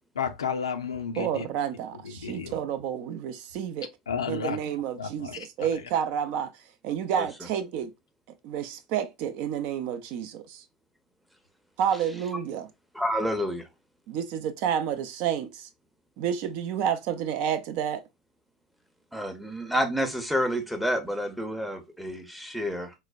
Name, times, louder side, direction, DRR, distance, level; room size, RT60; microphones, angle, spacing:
voice 1, 0.2-1.5 2.0-2.5 4.1-4.6 5.0-5.7, left 6 dB, 70° left, 0.4 m, -32 dB
voice 2, 1.2-3.9 4.3-7.9 8.4-10.6 11.8-12.7 14.1-15.7 16.2-18.0, right 9 dB, 45° right, 0.5 m, -30 dB
voice 3, 12.9-13.7 19.1-22.9, equal, ahead, 0.7 m, -29 dB
4.5 x 2.1 x 2.3 m
figure-of-eight pair, 80°, 3 cm